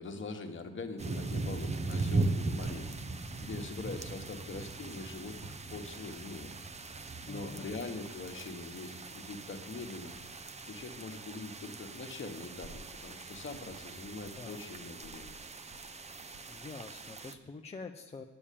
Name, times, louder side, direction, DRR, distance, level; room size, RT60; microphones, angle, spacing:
voice 1, 0.0-2.9 3.4-6.5 7.3-10.1 10.6-15.4, left 3 dB, 40° left, 5 dB, 1.4 m, -43 dB
sound 1, 1.0-17.3, right 3 dB, 20° right, 0.7 m, -39 dB
voice 2, 7.2-7.7 14.4-14.6 16.5-18.2, left 4 dB, 20° left, 3 dB, 0.6 m, -46 dB
8.9 x 7.0 x 8.5 m, 1.3 s
cardioid pair, 90°, 30 cm